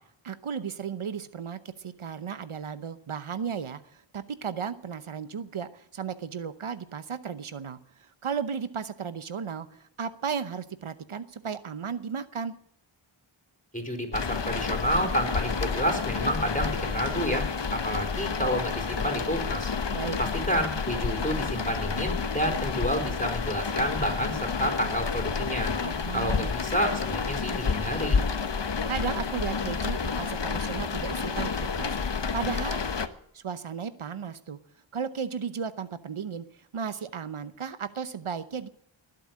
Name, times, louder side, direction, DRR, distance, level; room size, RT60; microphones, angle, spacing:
voice 1, 0.2-12.5 19.9-20.2 25.8-26.5 28.9-32.0 32.3-32.8 33.3-34.6 34.9-36.5 36.7-38.7, right 6 dB, 75° right, 13 dB, 0.9 m, -35 dB
voice 2, 13.7-19.7 20.2-25.7 26.1-28.2, equal, 15° left, 4 dB, 4.2 m, -29 dB
sound 1, 14.1-33.1, left 5 dB, 60° left, 1.1 m, -30 dB
20.5 x 7.8 x 8.7 m, 0.68 s
wide cardioid pair, 55°, 49 cm